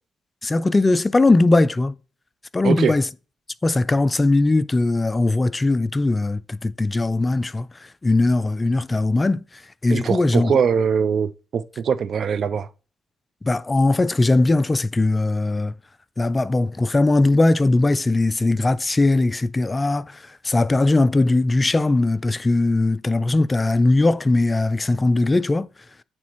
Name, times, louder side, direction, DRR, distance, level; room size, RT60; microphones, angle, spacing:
voice 1, 0.4-1.9 2.5-3.1 3.6-9.4 9.8-10.5 13.4-15.7 16.2-25.7, left 2 dB, 20° left, 0.3 m, -19 dB
voice 2, 9.9-12.7, right 7 dB, 55° right, 0.4 m, -22 dB
8.8 x 4.0 x 3.0 m
cardioid pair, 90°, 0 cm